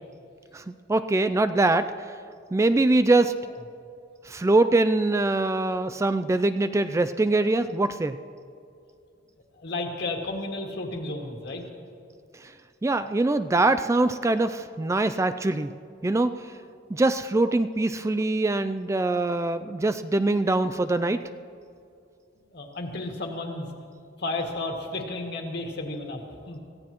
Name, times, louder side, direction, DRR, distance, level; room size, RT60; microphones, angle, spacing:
voice 1, 0.9-1.9 2.5-3.3 4.3-8.2 12.8-15.7 16.0-16.3 16.9-21.2, right 2 dB, 15° right, 10 dB, 0.3 m, -23 dB
voice 2, 9.6-11.6 22.5-23.7 24.2-26.6, left 2 dB, 60° left, 1 dB, 2.1 m, -32 dB
24.0 x 15.5 x 3.0 m, 2.5 s
head